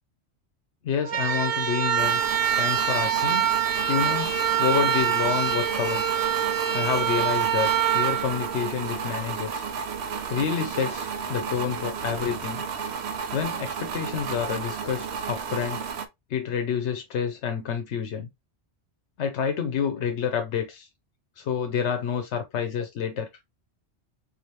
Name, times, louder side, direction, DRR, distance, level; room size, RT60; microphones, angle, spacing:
voice 1, 0.8-2.2 2.6-3.5 3.9-4.3 4.6-6.1 6.7-9.6 10.3-12.6 13.3-15.8 16.3-18.3 19.2-20.9 21.4-23.3, left 7 dB, 80° left, 1.0 m, -28 dB
sound 1, 1.0-9.2, right 9 dB, 50° right, 0.5 m, -25 dB
sound 2, 2.0-16.1, right 6 dB, 70° right, 0.9 m, -33 dB
4.8 x 2.6 x 2.9 m
omnidirectional pair, 1.2 m